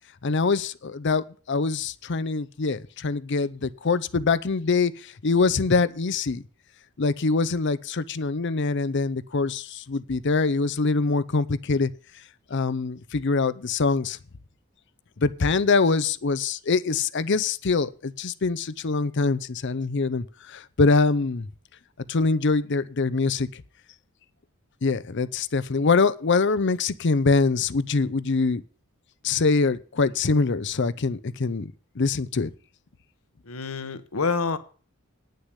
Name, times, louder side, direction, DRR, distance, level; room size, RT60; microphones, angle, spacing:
voice 1, 0.2-6.4 7.0-11.9 12.5-14.2 15.2-21.5 22.1-23.6 24.8-28.6 29.2-32.5, left 4 dB, 55° left, 0.6 m, -24 dB
voice 2, 33.5-34.6, left 4 dB, 80° left, 1.0 m, -27 dB
9.8 x 6.6 x 8.0 m
head